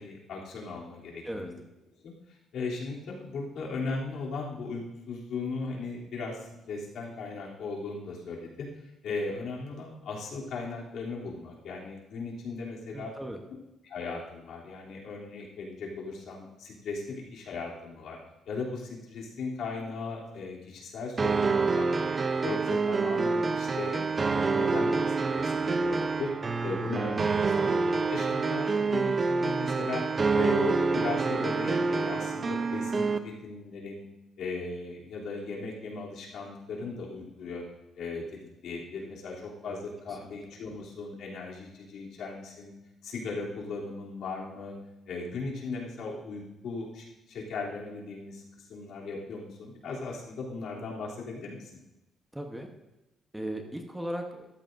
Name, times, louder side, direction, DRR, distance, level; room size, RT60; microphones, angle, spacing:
voice 1, 0.0-1.6 2.0-2.1 2.5-8.7 9.0-13.1 13.8-18.2 18.5-22.1 22.4-24.0 24.3-26.3 26.6-27.7 28.1-30.0 30.3-34.0 34.4-37.6 38.0-38.2 38.6-42.7 43.0-44.7 45.1-51.7, left 4 dB, 70° left, -3 dB, 3.0 m, -37 dB
voice 2, 12.9-13.4 27.4-27.9 39.7-39.8 40.2-40.4 52.3-52.7 53.3-54.5, right 1 dB, 5° right, 3 dB, 1.0 m, -37 dB
sound 1, 21.2-33.2, right 4 dB, 30° right, 0.6 m, -27 dB
13.5 x 13.5 x 2.6 m, 0.98 s
cardioid pair, 140°, 0 cm